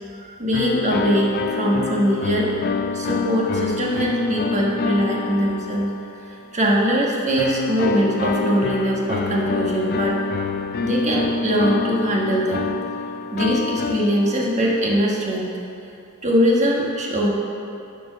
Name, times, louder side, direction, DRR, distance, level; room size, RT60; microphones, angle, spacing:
voice 1, 0.4-2.5 2.9-5.9 6.2-10.2 10.8-12.7 13.3-15.5 16.2-17.3, equal, 30° right, -3 dB, 1.4 m, -21 dB
sound 1, 0.5-6.3 7.4-14.8, left 4 dB, 45° left, 0.3 m, -27 dB
11.5 x 4.5 x 6.3 m, 2.7 s
head